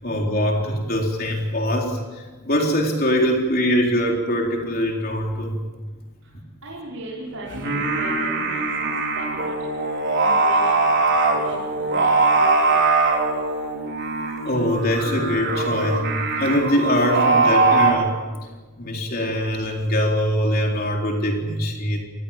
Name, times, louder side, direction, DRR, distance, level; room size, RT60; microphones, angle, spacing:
voice 1, 0.0-5.6 14.4-16.1 16.4-18.1 18.8-22.0, equal, 45° left, 0 dB, 4.0 m, -22 dB
voice 2, 6.6-9.5 10.2-10.9 11.3-12.7, right 1 dB, 80° right, -6 dB, 5.4 m, -37 dB
Singing, 7.5-17.9, right 3 dB, 55° right, 4.6 m, -21 dB
27.0 x 19.0 x 7.4 m, 1.3 s
head